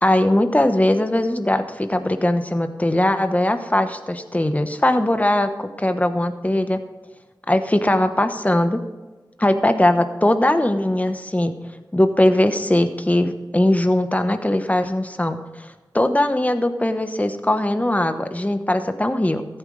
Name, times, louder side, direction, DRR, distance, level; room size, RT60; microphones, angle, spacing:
voice 1, 0.0-6.8 7.5-8.8 9.4-11.5 11.9-19.5, left 1 dB, 20° left, 8 dB, 1.1 m, -20 dB
14.5 x 9.1 x 3.3 m, 1.2 s
wide cardioid pair, 50°, 8 cm